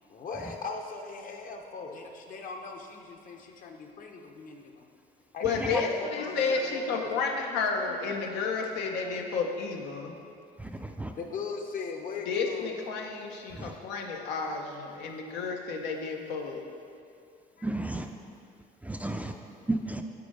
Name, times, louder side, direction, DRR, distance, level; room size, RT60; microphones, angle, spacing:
voice 1, 0.1-4.9 5.3-7.2 7.8-8.0 9.0-9.7 11.0-12.8 17.6-17.7 19.0-19.1, left 4 dB, 55° left, 3 dB, 0.9 m, -40 dB
voice 2, 5.4-10.1 12.3-16.6, left 5 dB, 90° left, 2 dB, 0.8 m, -31 dB
voice 3, 10.6-11.1 13.5-13.7 17.6-18.1 18.8-19.3 19.7-20.0, right 2 dB, 10° right, 4 dB, 0.3 m, -33 dB
8.4 x 4.3 x 5.4 m, 2.4 s
cardioid pair, 110°, 17 cm